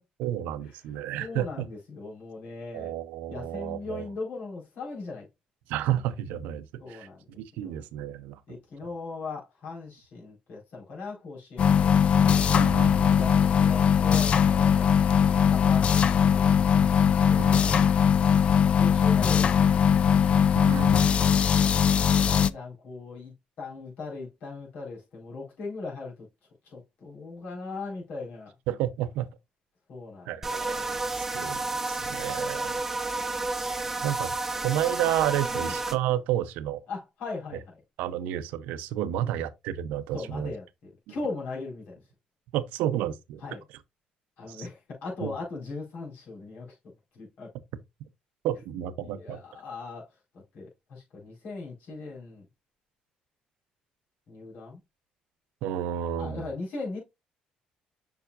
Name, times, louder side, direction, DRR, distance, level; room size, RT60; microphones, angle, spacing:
voice 1, 0.2-1.7 2.7-4.1 5.7-7.1 7.4-8.4 12.5-13.4 17.4-17.9 20.6-21.2 28.7-29.3 30.3-30.9 31.2-32.7 34.0-34.4 34.6-36.8 38.0-40.5 42.5-43.4 44.5-44.7 45.2-45.3 48.4-49.4 55.6-56.5, right 11 dB, 90° right, 0.7 m, -31 dB
voice 2, 1.2-2.9 3.3-5.3 6.8-7.2 7.6-7.8 8.5-12.0 12.9-14.9 15.5-16.6 17.3-17.7 18.6-19.9 22.1-26.3 26.7-28.5 29.9-30.3 31.4-31.5 31.9-32.2 35.5-35.7 36.9-37.6 39.2-39.4 40.1-42.0 43.4-43.6 44.4-46.7 47.1-47.5 49.0-50.0 50.5-52.4 54.3-54.8 56.2-57.0, left 3 dB, 65° left, 4.4 m, -39 dB
sound 1, 11.6-22.5, left 7 dB, 45° left, 0.4 m, -21 dB
sound 2, 30.4-36.0, right 2 dB, 10° right, 0.9 m, -31 dB
7.1 x 5.7 x 2.5 m
cardioid pair, 100°, 3 cm